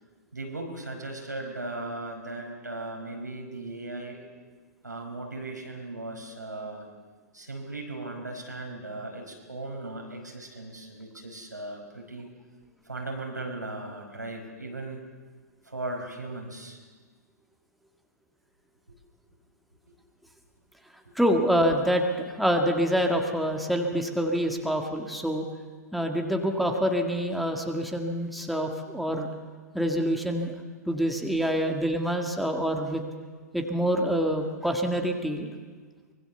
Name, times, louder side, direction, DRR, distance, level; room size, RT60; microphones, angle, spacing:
voice 1, 0.3-4.2 4.8-6.9 7.3-12.3 12.9-15.0 15.6-16.8 21.1-21.2, right 2 dB, 85° right, 1 dB, 5.2 m, -37 dB
voice 2, 21.2-25.5 25.9-29.3 29.7-30.5 30.9-33.0 33.5-35.5, equal, ahead, 3 dB, 2.0 m, -26 dB
24.5 x 21.0 x 7.0 m, 1.5 s
figure-of-eight pair, 110°, 9 cm